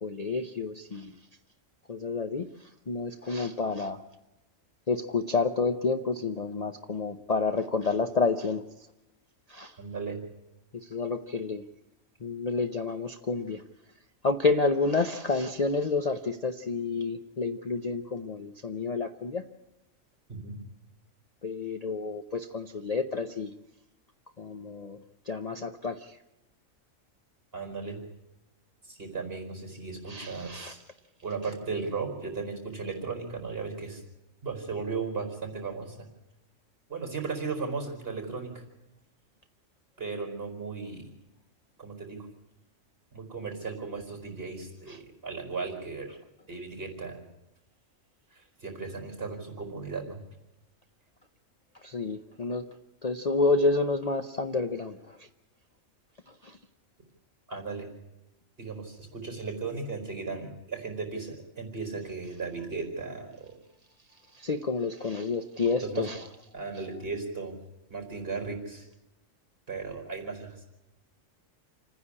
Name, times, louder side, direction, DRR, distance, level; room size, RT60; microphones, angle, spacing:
voice 1, 0.0-1.1 1.9-2.5 2.9-4.0 4.9-8.6 9.5-9.7 10.7-11.6 12.2-13.6 14.2-19.4 21.4-23.5 24.4-25.0 25.3-26.2 30.1-30.7 51.8-52.7 53.0-55.2 56.4-56.6 64.4-66.2, left 4 dB, 35° left, 7 dB, 0.7 m, -29 dB
voice 2, 9.8-10.2 20.3-20.6 27.5-28.0 28.8-30.8 31.2-34.0 34.4-36.0 36.9-38.6 40.0-41.1 41.8-42.3 43.1-46.2 46.5-47.2 48.3-50.2 57.5-57.9 58.6-63.5 65.8-66.1 66.5-67.6 67.9-68.9 69.7-70.6, right 4 dB, 45° right, 3 dB, 4.7 m, -36 dB
28.0 x 10.0 x 9.8 m, 0.92 s
omnidirectional pair, 1.4 m